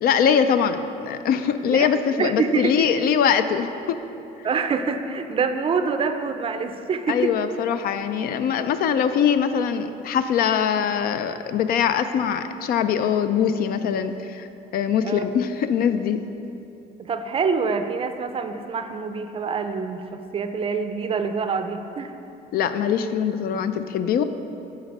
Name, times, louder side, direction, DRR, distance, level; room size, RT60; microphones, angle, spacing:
voice 1, 0.0-4.0 7.1-14.5 14.7-16.2 22.5-24.2, left 7 dB, 60° left, 11 dB, 0.4 m, -22 dB
voice 2, 1.6-2.9 4.4-7.3 15.0-15.3 17.0-22.1, right 5 dB, 35° right, 8 dB, 0.4 m, -26 dB
7.7 x 4.0 x 5.2 m, 2.9 s
cardioid pair, 110°, 17 cm